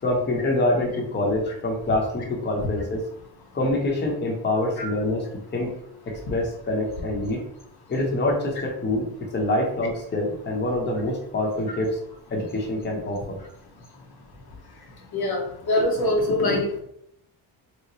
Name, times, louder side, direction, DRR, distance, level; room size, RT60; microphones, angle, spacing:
voice 1, 0.0-3.0 3.5-5.2 5.5-5.7 6.1-7.4 7.9-12.0 12.3-13.4, left 1 dB, 25° left, -1 dB, 0.8 m, -25 dB
voice 2, 15.1-16.8, left 1 dB, 55° left, 1 dB, 0.9 m, -23 dB
3.0 x 2.1 x 3.9 m, 0.71 s
cardioid pair, 105°, 46 cm